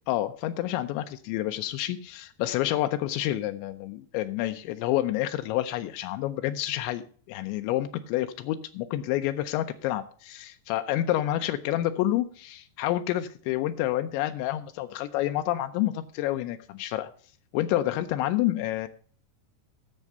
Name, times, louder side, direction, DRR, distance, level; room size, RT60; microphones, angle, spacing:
voice 1, 0.1-17.1 17.5-18.9, left 14 dB, 85° left, 8 dB, 2.9 m, -28 dB
10.5 x 7.3 x 6.6 m, 0.44 s
omnidirectional pair, 5.2 m